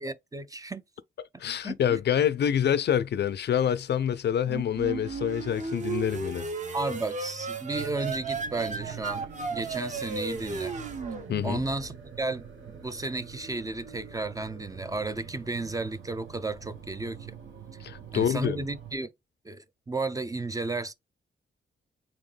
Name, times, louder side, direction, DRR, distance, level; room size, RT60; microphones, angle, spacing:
voice 1, 0.0-0.8 1.6-2.0 6.7-10.7 11.4-17.4 18.1-19.1 19.4-20.9, right 3 dB, 20° right, 0.4 m, -33 dB
voice 2, 1.4-6.5 11.3-11.6 17.8-18.6, left 9 dB, 60° left, 0.4 m, -26 dB
sound 1, 4.4-12.1, right 4 dB, 40° right, 0.8 m, -35 dB
sound 2, 7.7-19.0, right 7 dB, 80° right, 1.3 m, -45 dB
4.3 x 3.0 x 3.2 m
wide cardioid pair, 140°, 20 cm